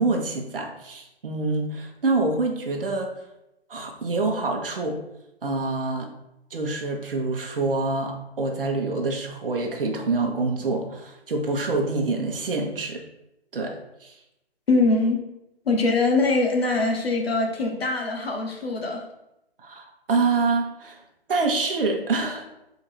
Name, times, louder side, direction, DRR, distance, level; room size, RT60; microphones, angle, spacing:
voice 1, 0.0-3.1 3.7-5.0 5.4-6.1 6.5-13.0 13.5-13.7 14.0-14.1 19.6-21.0 21.3-22.5, right 3 dB, 60° right, 2 dB, 1.0 m, -26 dB
voice 2, 14.7-15.2 15.6-19.0, left 3 dB, 70° left, 2 dB, 1.1 m, -22 dB
3.8 x 2.8 x 4.5 m, 0.87 s
hypercardioid pair, 170°, 31 cm